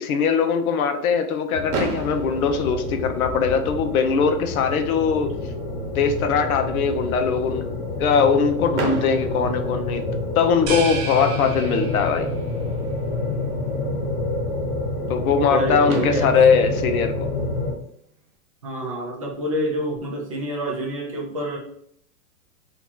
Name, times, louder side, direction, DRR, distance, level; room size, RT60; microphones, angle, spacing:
voice 1, 0.0-5.3 5.9-7.7 8.0-10.0 10.4-12.3 15.1-17.3, left 6 dB, 75° left, 6 dB, 0.7 m, -21 dB
sound 1, 1.5-17.7, left 2 dB, 35° left, 0.6 m, -28 dB
Fireworks, 1.7-3.7 4.6-4.7 4.8-5.0 5.4-5.5 8.7-10.6 12.3-12.4 15.4-15.5 15.9-18.2, right 3 dB, 85° right, 1.1 m, -33 dB
sound 2, 10.7-12.4, right 5 dB, 50° right, 0.7 m, -32 dB
voice 2, 15.5-16.3 18.6-21.6, equal, 25° right, -2 dB, 0.4 m, -27 dB
2.9 x 2.3 x 3.7 m, 0.67 s
supercardioid pair, 170°, 44 cm